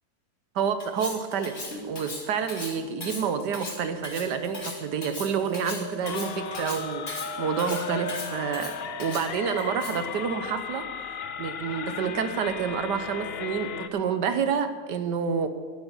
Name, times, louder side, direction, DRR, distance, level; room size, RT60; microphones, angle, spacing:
voice 1, 0.5-1.6 1.8-10.9 11.4-15.5, right 6 dB, 80° right, 9 dB, 1.5 m, -28 dB
Cutlery silverware, 0.8-10.1, left 2 dB, 40° left, 2.8 m, -38 dB
sound 1, 4.1-10.2 12.5-12.6 12.8-12.9, right 1 dB, 45° right, 1.9 m, -41 dB
sound 2, 6.0-13.9, left 8 dB, 65° left, 0.6 m, -36 dB
11.0 x 9.7 x 8.2 m, 1.5 s
omnidirectional pair, 1.8 m